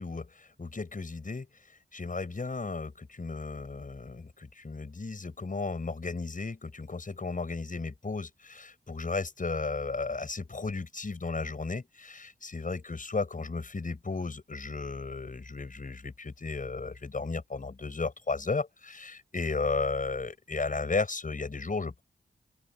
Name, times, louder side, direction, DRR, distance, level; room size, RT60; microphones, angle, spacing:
voice 1, 0.0-1.5 1.9-22.0, left 4 dB, 45° left, 7.2 m, -34 dB
open air
cardioid pair, 60°, 19 cm